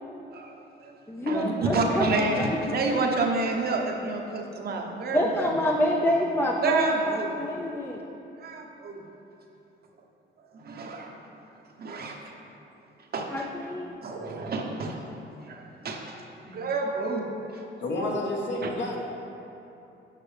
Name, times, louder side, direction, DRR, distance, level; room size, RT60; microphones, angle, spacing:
voice 1, 0.3-5.5 6.6-7.4 8.4-9.0 10.5-11.2 11.8-12.3 13.1-13.3 14.0-15.0 15.4-16.2 16.4-17.6 18.6-18.7, right 3 dB, 50° right, 1 dB, 0.9 m, -29 dB
voice 2, 1.1-3.1 5.1-8.0 13.3-14.0, left 1 dB, 10° left, 0 dB, 0.5 m, -27 dB
voice 3, 17.8-19.0, left 1 dB, 65° left, -1 dB, 1.3 m, -29 dB
8.4 x 5.9 x 3.3 m, 2.8 s
cardioid pair, 90°, 20 cm